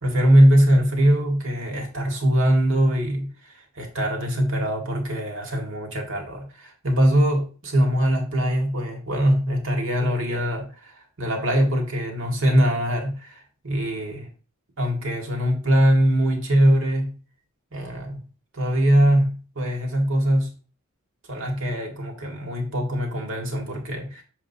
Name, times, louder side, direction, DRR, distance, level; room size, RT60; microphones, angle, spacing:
voice 1, 0.0-3.3 3.8-10.9 11.2-14.2 14.8-17.2 17.7-18.2 18.5-20.5 21.3-24.2, equal, 65° right, 2.0 m, -22 dB
7.2 x 4.9 x 2.8 m
head